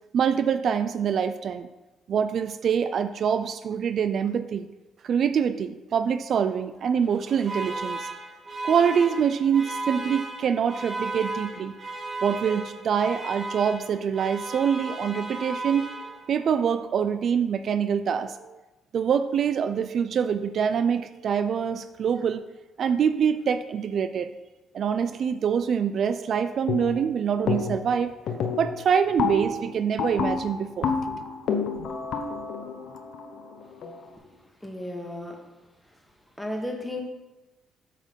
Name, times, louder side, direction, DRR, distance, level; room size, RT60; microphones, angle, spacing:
voice 1, 0.1-1.7 2.1-4.7 5.0-8.1 8.6-11.7 12.2-18.6 18.9-22.5 22.8-24.3 24.7-28.1 28.6-30.9, right 7 dB, 60° right, 10 dB, 0.3 m, -25 dB
Alarm, 7.0-16.4, right 2 dB, 45° right, 2.1 m, -35 dB
sound 1, 26.7-27.1 27.5-27.9 28.3-34.1, left 5 dB, 70° left, 0.9 m, -29 dB
voice 2, 33.5-35.4 35.8-37.0, left 1 dB, 5° left, 1 dB, 1.5 m, -37 dB
8.1 x 4.2 x 5.5 m, 1.1 s
cardioid pair, 90°, 0 cm